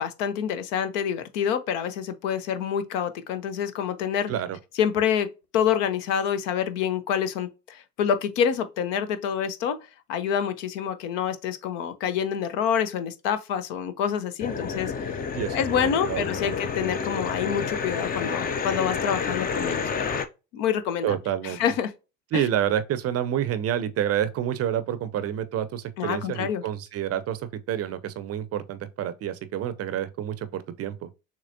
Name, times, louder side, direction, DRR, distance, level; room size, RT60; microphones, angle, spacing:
voice 1, 0.0-4.3 4.8-5.3 5.5-9.8 10.1-15.2 15.5-20.2 20.5-21.2 21.4-21.9 22.3-22.5 26.0-26.6, left 8 dB, 60° left, 0.8 m, -27 dB
sound 1, 14.4-20.3, left 5 dB, 20° left, 0.6 m, -29 dB
voice 2, 15.3-16.5 21.0-21.6 22.3-31.1, right 10 dB, 35° right, 0.6 m, -28 dB
6.5 x 3.0 x 2.6 m
figure-of-eight pair, 65°, 42 cm